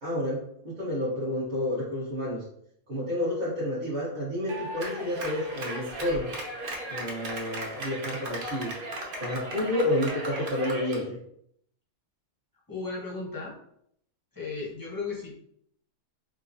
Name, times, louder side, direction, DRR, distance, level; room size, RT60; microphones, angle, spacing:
voice 1, 0.0-2.4 2.9-6.3 6.9-8.7 9.2-11.2, left 1 dB, 35° right, -10 dB, 1.0 m, -30 dB
Clapping, 4.5-11.0, right 1 dB, 55° right, 0.6 m, -36 dB
voice 2, 12.7-13.6 14.3-15.3, left 4 dB, 25° left, -4 dB, 0.5 m, -35 dB
4.8 x 2.2 x 2.6 m, 0.71 s
omnidirectional pair, 1.7 m